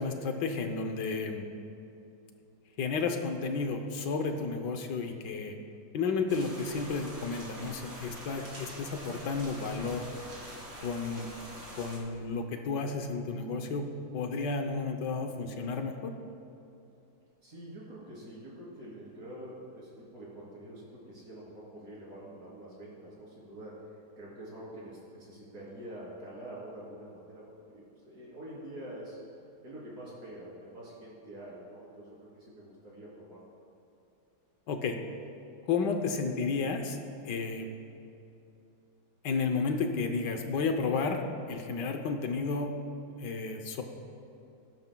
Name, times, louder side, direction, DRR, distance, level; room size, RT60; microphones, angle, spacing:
voice 1, 0.0-1.5 2.8-5.6 5.9-10.0 10.8-11.3 11.8-16.1 34.7-35.0 35.7-37.0 37.2-37.7 39.2-41.2 41.5-42.7 43.2-43.8, left 4 dB, 70° left, 5 dB, 1.4 m, -32 dB
sound 1, 6.3-12.0, right 1 dB, 65° right, 3.1 m, -45 dB
voice 2, 17.4-29.2 29.6-33.4, right 1 dB, 50° right, -6 dB, 3.6 m, -46 dB
19.0 x 10.5 x 2.3 m, 2.7 s
omnidirectional pair, 2.0 m